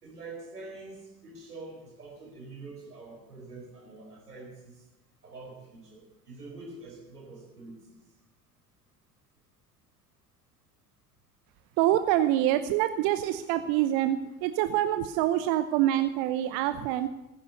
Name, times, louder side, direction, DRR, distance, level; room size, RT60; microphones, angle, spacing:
voice 1, 0.0-4.8 5.2-7.8, right 3 dB, 85° right, -1 dB, 4.7 m, -45 dB
voice 2, 11.8-17.1, right 13 dB, 55° right, 11 dB, 0.9 m, -26 dB
15.5 x 10.5 x 6.7 m, 1.1 s
figure-of-eight pair, 70°, 45 cm